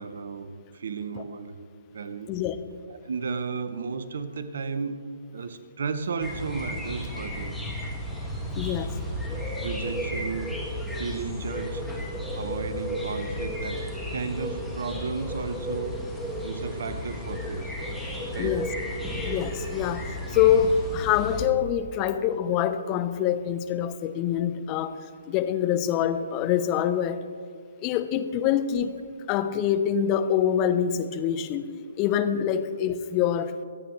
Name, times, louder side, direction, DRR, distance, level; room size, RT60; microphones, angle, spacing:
voice 1, 0.0-1.5 1.9-2.3 2.9-5.0 5.3-7.5 9.3-10.6 10.9-11.9 12.3-16.0 16.4-17.8 18.3-18.6, right 5 dB, 60° right, 11 dB, 1.0 m, -34 dB
sound 1, 6.2-21.4, equal, ahead, 2.0 m, -33 dB
voice 2, 8.5-8.9 18.4-18.7 19.2-25.0 25.3-27.2 27.8-31.7 32.0-33.6, left 9 dB, 25° left, 11 dB, 0.7 m, -25 dB
24.0 x 9.0 x 3.2 m, 2.2 s
figure-of-eight pair, 130°, 0 cm